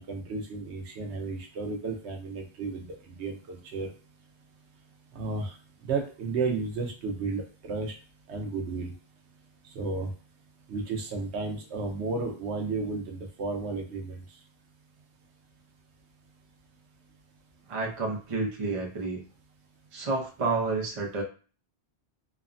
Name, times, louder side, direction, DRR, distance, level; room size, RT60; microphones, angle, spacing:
voice 1, 0.0-3.9 5.1-5.6 5.8-7.9 8.3-8.9 9.7-10.1 10.7-14.2, right 4 dB, 80° right, 3 dB, 0.9 m, -33 dB
voice 2, 17.7-19.2 19.9-21.2, right 3 dB, 35° right, -1 dB, 0.6 m, -30 dB
3.2 x 2.0 x 2.4 m, 0.37 s
omnidirectional pair, 1.1 m